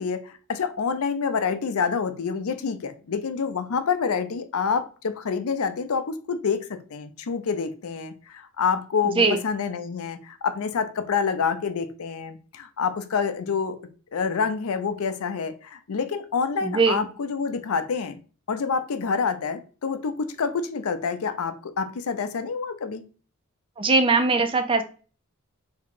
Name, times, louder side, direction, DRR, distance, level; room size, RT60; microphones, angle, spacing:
voice 1, 0.0-13.8 14.1-18.2 18.5-23.0, left 5 dB, 80° left, 10 dB, 0.5 m, -27 dB
voice 2, 16.6-17.0 23.8-24.8, right 3 dB, 25° right, 8 dB, 0.4 m, -20 dB
3.6 x 2.8 x 3.7 m, 0.37 s
head